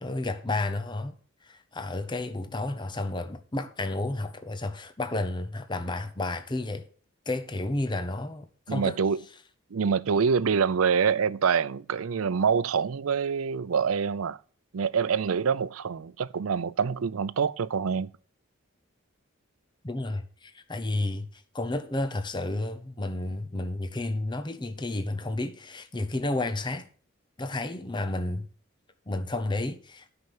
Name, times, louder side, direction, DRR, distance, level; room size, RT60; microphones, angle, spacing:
voice 1, 0.0-1.1 1.4-6.8 7.3-9.0 19.8-26.9 27.4-28.5 29.1-30.1, left 2 dB, 20° left, 0.8 m, -31 dB
voice 2, 8.7-9.2 9.7-14.4 14.7-18.1, right 6 dB, 90° right, 0.5 m, -26 dB
9.6 x 5.8 x 6.7 m
head